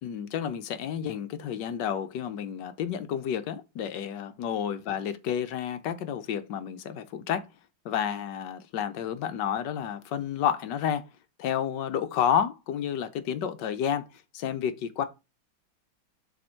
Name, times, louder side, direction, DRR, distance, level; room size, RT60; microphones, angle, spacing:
voice 1, 0.0-7.5 7.8-11.1 11.4-14.1 14.3-15.1, left 9 dB, 75° left, 1.4 m, -30 dB
6.9 x 3.5 x 4.4 m
omnidirectional pair, 2.0 m